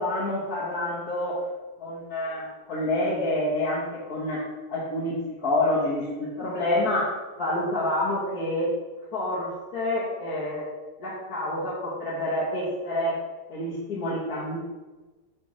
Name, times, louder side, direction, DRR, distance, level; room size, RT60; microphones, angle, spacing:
voice 1, 0.0-1.4 1.8-4.4 4.7-7.1 7.4-8.7 9.1-10.6 11.0-13.1 13.5-14.6, left 1 dB, 60° left, -8 dB, 1.8 m, -28 dB
7.4 x 3.5 x 4.9 m, 1.2 s
omnidirectional pair, 1.8 m